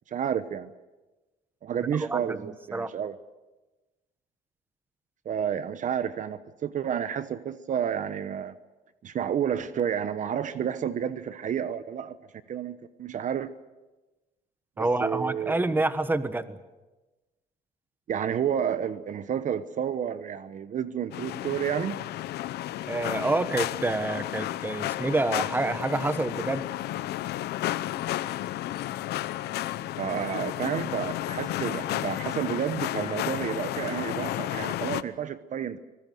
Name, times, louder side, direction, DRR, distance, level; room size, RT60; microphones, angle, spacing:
voice 1, 0.1-0.7 1.6-3.1 5.2-8.5 9.0-12.2 12.5-13.5 14.8-15.8 18.1-22.0 30.0-35.8, right 8 dB, 50° right, 13 dB, 1.0 m, -30 dB
voice 2, 2.0-2.9 14.8-16.6 22.9-26.7, right 2 dB, 10° right, 12 dB, 1.3 m, -28 dB
sound 1, 21.1-35.0, left 14 dB, 75° left, 0.9 m, -32 dB
25.5 x 19.5 x 7.8 m, 1.1 s
cardioid pair, 110°, 17 cm